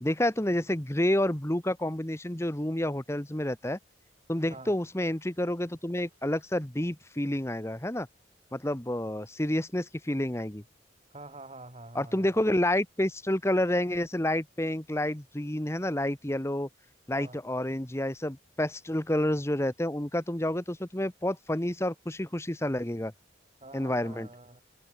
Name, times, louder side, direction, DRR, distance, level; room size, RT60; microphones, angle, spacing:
voice 1, 0.0-3.8 4.3-8.1 8.5-10.6 11.9-16.7 17.1-23.1 23.7-24.3, left 1 dB, 15° left, 1.2 m, -29 dB
voice 2, 11.1-12.5 17.2-17.4 23.6-24.6, right 2 dB, 30° right, 3.8 m, -47 dB
head